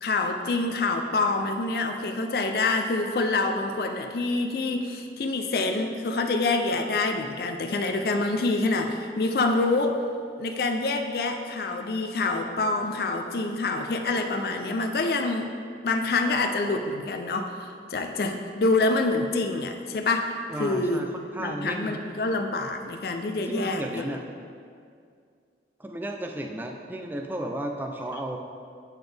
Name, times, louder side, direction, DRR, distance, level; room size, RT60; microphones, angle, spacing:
voice 1, 0.0-10.0 10.4-15.5 15.8-21.1 21.4-24.1, left 3 dB, 55° left, 4 dB, 0.4 m, -26 dB
voice 2, 20.5-21.1 21.4-22.0 23.5-24.2 25.8-28.4, right 1 dB, 10° right, 2 dB, 0.3 m, -33 dB
8.7 x 4.0 x 3.3 m, 2.3 s
head